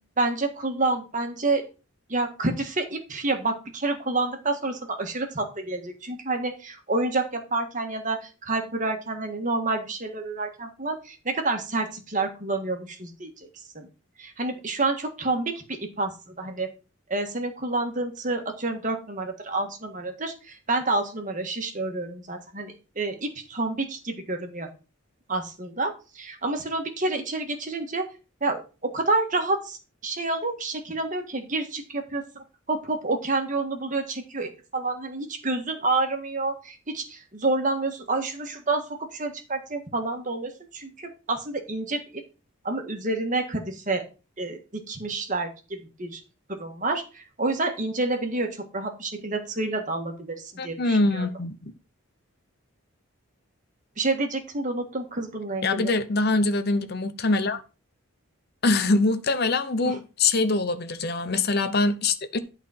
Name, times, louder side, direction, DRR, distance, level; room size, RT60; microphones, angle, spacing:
voice 1, 0.2-1.7 2.1-13.3 13.8-13.9 14.2-16.7 17.1-24.7 25.3-28.0 28.4-29.8 30.0-42.2 42.6-44.0 44.4-44.6 44.9-46.2 46.5-51.3 54.0-55.9 59.9-60.0, right 2 dB, 35° right, 1.6 m, -29 dB
voice 2, 50.6-51.7 55.6-57.6 58.6-62.4, left 3 dB, 50° left, 0.7 m, -24 dB
11.5 x 4.1 x 5.8 m
head